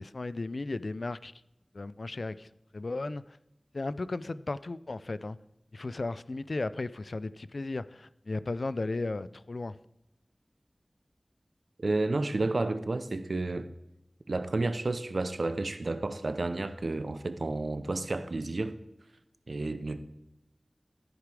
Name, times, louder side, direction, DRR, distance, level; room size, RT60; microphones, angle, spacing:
voice 1, 0.0-1.3 1.7-2.5 2.7-3.4 3.7-5.4 5.7-9.7, left 2 dB, 75° left, 0.3 m, -35 dB
voice 2, 11.8-13.7 14.3-18.8 19.5-20.0, right 2 dB, 80° right, 0.6 m, -31 dB
13.5 x 5.0 x 4.8 m
wide cardioid pair, 45°, 0 cm